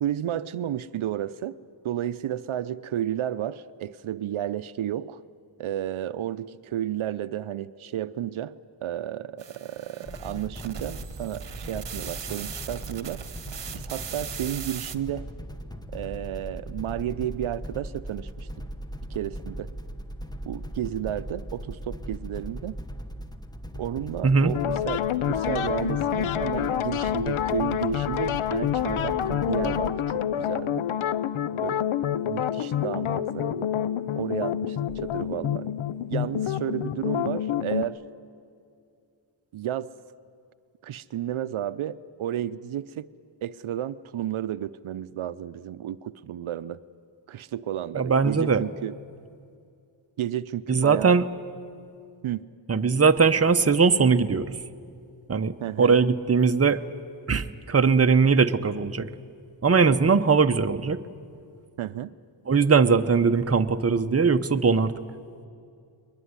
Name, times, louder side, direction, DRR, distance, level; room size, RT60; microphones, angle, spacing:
voice 1, 0.0-1.6 1.8-5.2 5.6-13.2 13.7-15.3 15.9-18.5 19.1-19.7 20.5-22.8 23.8-24.6 24.9-30.9 31.5-31.9 32.2-33.7 34.2-35.7 36.1-38.0 39.5-39.9 40.8-43.1 43.4-46.8 47.3-48.9 50.2-51.2 52.2-52.4 55.6-56.0 61.8-62.1, right 11 dB, 85° right, 15 dB, 0.6 m, -32 dB
sound 1, 9.4-15.0, right 7 dB, 60° right, 1.2 m, -39 dB
sound 2, 10.1-29.9, equal, 10° left, 1.2 m, -39 dB
sound 3, 24.5-37.9, left 10 dB, 90° left, 0.8 m, -27 dB
voice 2, 47.9-48.6 50.7-51.2 52.7-54.6 55.3-56.8 57.3-59.1 59.6-61.0 62.5-64.9, right 5 dB, 30° right, 9 dB, 0.9 m, -20 dB
22.0 x 21.5 x 9.7 m, 2.4 s
wide cardioid pair, 90°, 48 cm